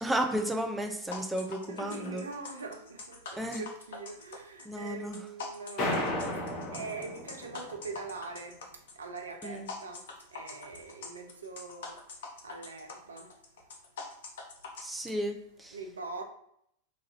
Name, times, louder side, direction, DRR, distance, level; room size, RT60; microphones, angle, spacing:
voice 1, 0.0-2.2 3.4-3.6 4.6-5.2 9.4-9.7 14.8-15.8, right 1 dB, 5° right, 0.3 m, -33 dB
sound 1, 1.1-14.8, left 4 dB, 60° left, 0.5 m, -44 dB
voice 2, 1.7-6.5 6.7-8.6 9.0-10.0 10.3-12.0 12.4-13.3 15.7-16.2, right 3 dB, 70° right, 0.4 m, -43 dB
sound 2, 5.8-7.8, left 1 dB, 40° left, 0.9 m, -33 dB
3.1 x 2.4 x 2.7 m
figure-of-eight pair, 90°, 0 cm